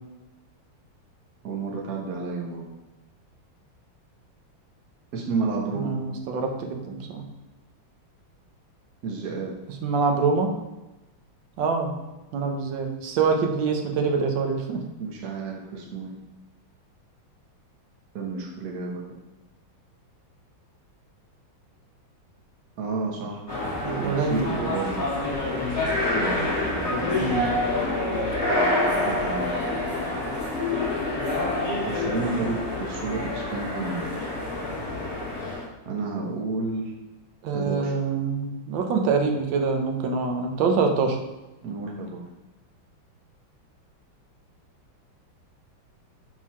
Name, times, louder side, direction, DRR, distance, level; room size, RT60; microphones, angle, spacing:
voice 1, 1.4-2.6 5.1-6.0 9.0-9.5 15.0-16.2 18.1-19.2 22.8-23.7 24.0-24.9 26.1-26.5 26.7-26.8 29.0-29.5 31.9-34.1 35.8-36.9 37.5-38.0 41.6-42.2, right 3 dB, 55° right, -2 dB, 1.4 m, -31 dB
voice 2, 5.8-7.2 9.8-10.5 11.6-11.9 12.3-14.8 23.8-24.7 25.5-25.8 27.1-27.5 37.4-41.2, right 4 dB, 70° right, 3 dB, 1.5 m, -25 dB
sound 1, 23.5-35.7, left 2 dB, 10° left, 1.8 m, -27 dB
4.7 x 3.9 x 5.5 m, 1.1 s
omnidirectional pair, 2.2 m